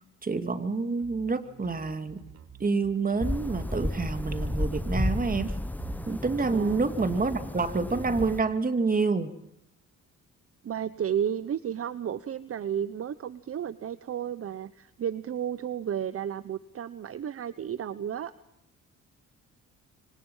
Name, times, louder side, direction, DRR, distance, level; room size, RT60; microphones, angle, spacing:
voice 1, 0.2-2.2 2.6-5.5 6.1-9.3, right 4 dB, 30° right, 9 dB, 2.6 m, -28 dB
sound 1, 1.0-8.7, right 8 dB, 65° right, 3.9 m, -49 dB
sound 2, 3.2-8.4, left 1 dB, 5° left, 0.8 m, -32 dB
voice 2, 6.5-6.8 10.6-18.3, right 9 dB, 50° right, 15 dB, 1.0 m, -32 dB
26.5 x 25.5 x 5.6 m, 0.78 s
cardioid pair, 90°, 30 cm